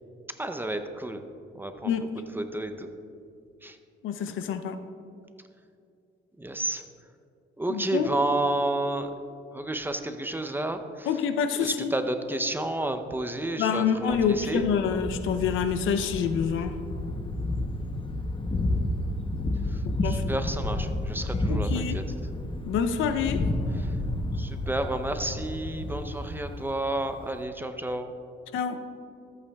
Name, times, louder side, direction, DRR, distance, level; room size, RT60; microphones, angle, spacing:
voice 1, 0.4-1.3 1.5-2.0 2.3-2.9 3.6-3.8 6.4-6.8 7.6-9.1 9.5-11.1 11.6-14.6 19.7-22.0 23.8-24.0 24.3-28.1, right 1 dB, 10° right, 7 dB, 0.6 m, -31 dB
voice 2, 4.0-4.8 7.7-8.1 11.1-11.9 13.6-16.8 19.8-20.4 21.5-22.0 22.7-23.4 28.5-28.8, left 7 dB, 85° left, 9 dB, 0.6 m, -27 dB
Thunder, 14.1-27.4, left 1 dB, 25° left, 0.8 m, -31 dB
14.0 x 8.5 x 2.3 m, 2.5 s
cardioid pair, 90°, 20 cm